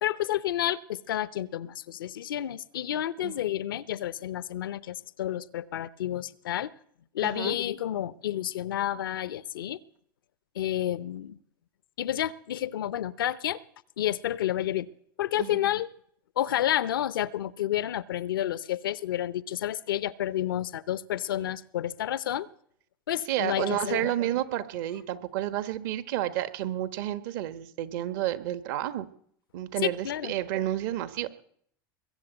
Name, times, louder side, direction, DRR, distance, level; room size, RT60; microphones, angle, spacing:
voice 1, 0.0-6.7 7.1-9.8 10.5-11.4 12.0-13.6 14.0-14.9 15.2-15.9 16.4-22.5 23.1-24.1 29.8-30.3, left 12 dB, 85° left, 19 dB, 0.6 m, -30 dB
voice 2, 7.2-7.6 15.4-15.6 23.3-29.1 29.5-31.3, right 13 dB, 65° right, 13 dB, 1.2 m, -30 dB
21.5 x 7.5 x 7.9 m, 0.65 s
hypercardioid pair, 100°, 11 cm